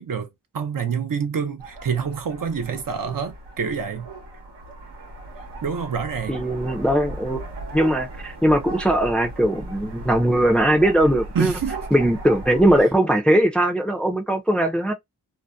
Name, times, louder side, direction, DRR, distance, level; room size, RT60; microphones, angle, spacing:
voice 1, 0.0-4.1 5.6-6.4 11.3-11.8 12.8-12.9, right 6 dB, 55° right, 0.6 m, -27 dB
sound 1, 1.6-12.8, right 2 dB, 75° right, 1.0 m, -37 dB
voice 2, 6.3-7.4 7.7-11.5 11.9-14.9, right 1 dB, 5° left, 0.5 m, -20 dB
2.6 x 2.1 x 2.3 m
cardioid pair, 60°, 41 cm